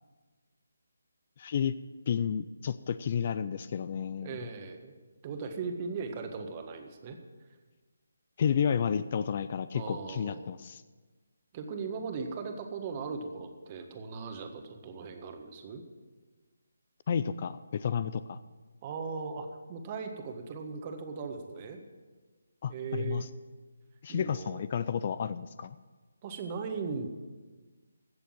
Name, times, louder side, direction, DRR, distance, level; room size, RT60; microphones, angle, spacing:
voice 1, 1.4-1.7 2.1-4.4 8.4-10.8 17.1-18.4 22.6-23.3 24.0-25.8, left 7 dB, 40° left, 15 dB, 0.4 m, -31 dB
voice 2, 4.2-4.9 5.2-7.2 9.7-10.4 11.5-15.8 18.8-21.8 22.7-23.3 24.1-24.6 26.2-27.1, right 5 dB, 30° right, 5 dB, 1.5 m, -38 dB
15.5 x 6.9 x 7.6 m, 1.3 s
figure-of-eight pair, 155°, 0 cm